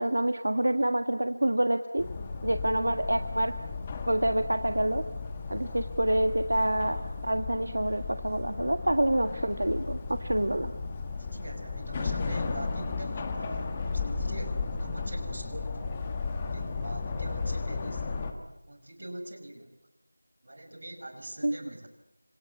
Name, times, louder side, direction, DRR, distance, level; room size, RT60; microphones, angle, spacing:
voice 1, 0.0-2.0 2.4-3.5 4.1-5.0 5.5-10.7 21.4-21.5, right 1 dB, 70° right, 8 dB, 1.6 m, -27 dB
sound 1, 2.0-18.3, left 4 dB, 10° left, 1.2 m, -34 dB
sound 2, 9.8-17.1, right 1 dB, 10° right, 7.6 m, -50 dB
voice 2, 11.1-15.8 16.4-18.1 18.7-19.7 20.4-21.9, right 1 dB, 45° right, 6 dB, 5.3 m, -43 dB
26.5 x 24.5 x 8.6 m, 0.94 s
figure-of-eight pair, 180°, 0 cm